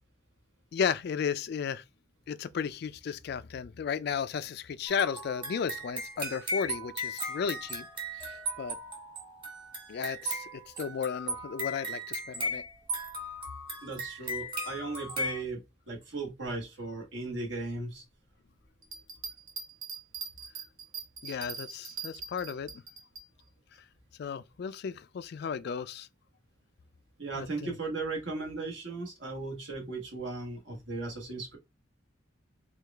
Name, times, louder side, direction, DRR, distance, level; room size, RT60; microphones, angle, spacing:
voice 1, 0.7-1.8 2.3-7.9 8.1-8.8 9.9-12.6 21.2-22.8 24.2-26.1 27.3-27.7, left 7 dB, 55° left, 0.3 m, -34 dB
sound 1, 4.9-15.4, equal, 25° right, 1.1 m, -37 dB
voice 2, 13.8-15.6 15.9-18.0 27.2-31.6, right 3 dB, 60° right, 1.4 m, -37 dB
Bell, 18.8-23.2 23.7-23.8, right 5 dB, 85° right, 0.8 m, -41 dB
4.7 x 2.3 x 3.3 m
head